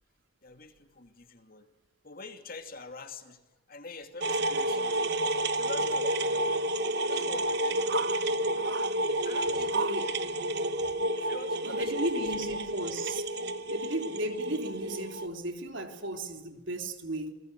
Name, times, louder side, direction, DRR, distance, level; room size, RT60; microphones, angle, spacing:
voice 1, 0.4-1.7 2.0-6.5 7.1-8.2 9.2-10.1 10.4-10.6 11.2-12.6, left 3 dB, 45° left, 6 dB, 2.7 m, -45 dB
sound 1, 4.2-15.3, right 1 dB, 55° right, 1.1 m, -30 dB
voice 2, 9.7-10.1 11.6-13.2 13.7-17.3, right 1 dB, 70° right, 5 dB, 3.5 m, -35 dB
28.5 x 21.0 x 8.3 m, 0.96 s
head